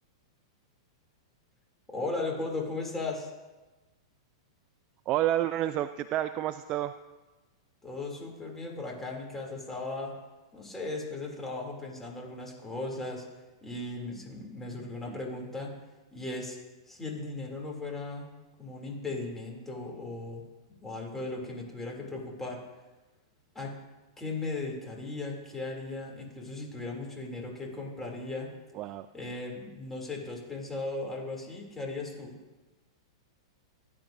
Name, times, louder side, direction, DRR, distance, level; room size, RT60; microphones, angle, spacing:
voice 1, 1.9-3.3 7.8-10.1 10.5-13.3 13.6-15.7 16.1-16.6 16.9-18.3 18.6-20.4 20.8-22.6 23.5-23.8 24.2-28.5 29.1-32.3, left 2 dB, 10° left, -1 dB, 2.7 m, -37 dB
voice 2, 5.1-6.9 15.1-15.2 28.7-29.1, right 13 dB, 35° right, 10 dB, 0.4 m, -29 dB
18.0 x 9.3 x 2.6 m, 1.2 s
hypercardioid pair, 120°, 3 cm